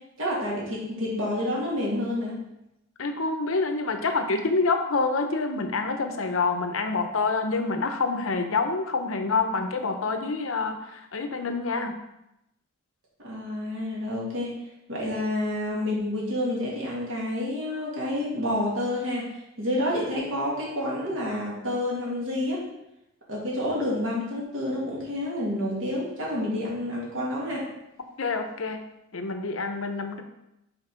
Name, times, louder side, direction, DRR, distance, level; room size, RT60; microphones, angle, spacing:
voice 1, 0.2-2.4 13.2-14.5 14.9-19.3 19.6-22.6 23.3-27.7, left 1 dB, 70° right, -5 dB, 2.7 m, -29 dB
voice 2, 3.0-12.0 28.2-28.8 29.1-30.2, left 3 dB, 80° left, 6 dB, 0.8 m, -27 dB
5.9 x 4.4 x 5.7 m, 0.86 s
head